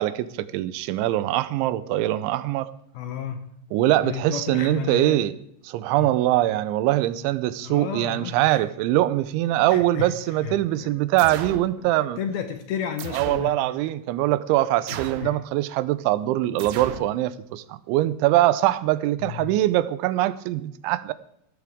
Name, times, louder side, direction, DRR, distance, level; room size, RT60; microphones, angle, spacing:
voice 1, 0.0-2.7 3.7-5.3 5.7-12.2 13.1-21.1, right 15 dB, 90° right, 15 dB, 3.1 m, -23 dB
voice 2, 2.9-3.5 4.0-5.3 6.0-6.1 7.6-8.7 9.7-11.0 11.8-13.6 14.9-15.4 19.2-19.5, left 8 dB, 75° left, 8 dB, 2.4 m, -33 dB
blaster comb (Sytrus mltprcsng combine attck+tale)single, 11.2-11.7 13.0-13.5 14.9-15.4 16.6-17.1, right 9 dB, 75° right, 2.3 m, -35 dB
17.0 x 14.0 x 3.6 m, 0.72 s
omnidirectional pair, 5.3 m